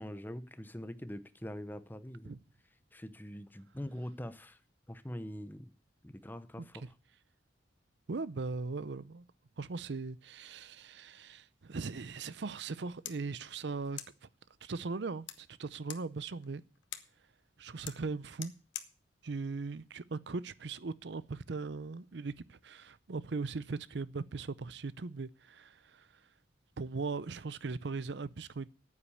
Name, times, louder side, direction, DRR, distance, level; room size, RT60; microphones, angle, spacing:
voice 1, 0.0-2.3 2.9-4.6 4.9-5.7 6.0-6.9, equal, 10° left, 0.7 m, -43 dB
voice 2, 6.6-6.9 8.1-9.2 9.6-14.0 14.6-16.6 17.6-18.5 19.2-26.1 26.8-28.7, right 4 dB, 70° right, 0.6 m, -39 dB
sound 1, 13.0-20.6, left 12 dB, 85° left, 1.2 m, -51 dB
9.4 x 8.6 x 8.5 m
head